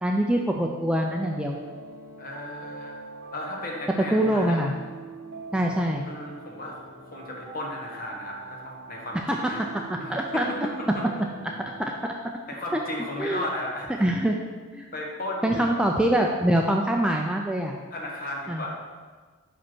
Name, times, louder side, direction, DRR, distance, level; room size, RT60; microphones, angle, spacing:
voice 1, 0.0-1.6 4.1-4.7 5.5-6.0 9.3-9.4 10.1-10.5 11.8-11.9 12.7-12.8 13.2-13.4 14.0-14.4 14.7-14.9 15.4-17.8 18.5-18.7, right 1 dB, 5° right, 1 dB, 0.3 m, -24 dB
night across the stars, 0.9-11.8, right 3 dB, 55° right, 2.1 m, -43 dB
voice 2, 2.2-3.0 3.3-4.6 6.0-6.8 7.1-9.6 10.0-11.1 12.5-14.0 14.9-15.7 17.9-18.7, left 1 dB, 45° left, -1 dB, 1.3 m, -35 dB
5.5 x 5.1 x 6.0 m, 1.4 s
head